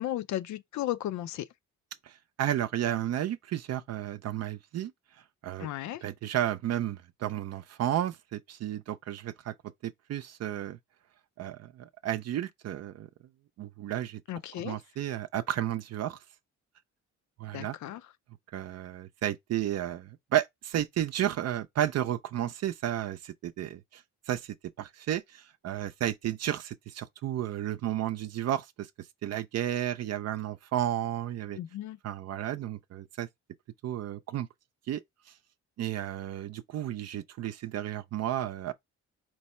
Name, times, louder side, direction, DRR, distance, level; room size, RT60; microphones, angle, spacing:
voice 1, 0.0-1.5 5.6-6.0 14.3-14.8 17.5-18.0 31.6-32.0, left 13 dB, 70° left, 0.5 m, -34 dB
voice 2, 2.0-4.9 5.4-5.7 6.0-9.5 9.8-10.8 11.4-13.1 13.6-14.2 14.6-16.2 17.4-17.8 18.5-24.0 24.3-28.9 29.2-31.6 32.0-33.3 33.8-34.5 34.9-35.0 35.8-38.7, right 12 dB, 55° right, 0.5 m, -32 dB
4.6 x 2.1 x 4.1 m
cardioid pair, 90°, 30 cm